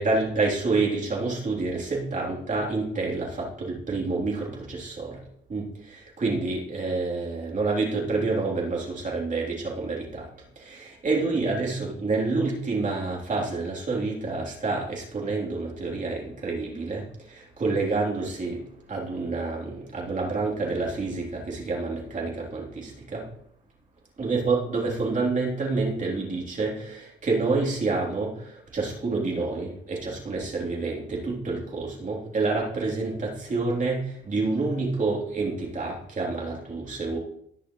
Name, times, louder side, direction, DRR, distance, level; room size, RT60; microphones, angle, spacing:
voice 1, 0.0-5.2 5.5-10.3 10.6-18.6 18.9-23.2 24.2-37.2, right 3 dB, 40° right, -3 dB, 3.7 m, -28 dB
19.0 x 6.5 x 3.3 m, 0.72 s
cardioid pair, 90°, 20 cm